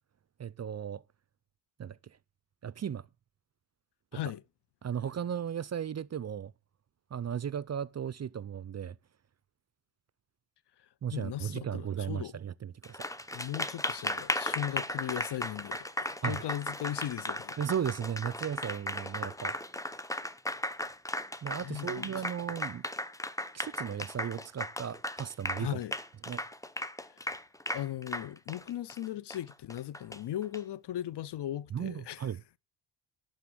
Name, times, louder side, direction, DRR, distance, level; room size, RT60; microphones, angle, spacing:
voice 1, 0.4-1.0 1.8-2.0 2.6-3.1 4.8-6.5 7.1-9.0 11.0-13.0 16.2-16.4 17.6-19.6 21.4-22.8 23.5-25.8 26.3-26.5 31.7-32.4, right 8 dB, 35° right, 0.5 m, -36 dB
voice 2, 11.1-12.3 13.3-17.6 21.6-22.1 25.6-25.9 27.1-27.3 27.7-32.2, left 12 dB, 60° left, 0.6 m, -38 dB
Applause, 12.8-30.6, left 1 dB, 5° left, 0.8 m, -36 dB
11.5 x 4.3 x 7.7 m
supercardioid pair, 50°, 46 cm